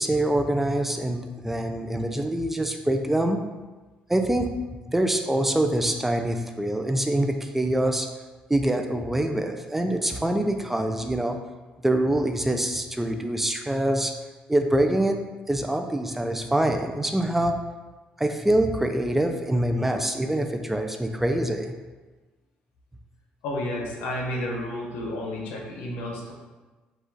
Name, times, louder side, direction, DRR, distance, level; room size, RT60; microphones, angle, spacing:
voice 1, 0.0-3.4 4.1-4.5 4.9-8.1 8.5-11.4 11.8-14.1 14.5-15.2 15.5-17.5 18.2-21.7, right 1 dB, 10° right, 5 dB, 0.4 m, -25 dB
voice 2, 23.4-26.3, left 1 dB, 90° left, -1 dB, 1.0 m, -31 dB
5.0 x 2.4 x 4.0 m, 1.2 s
cardioid pair, 100°, 3 cm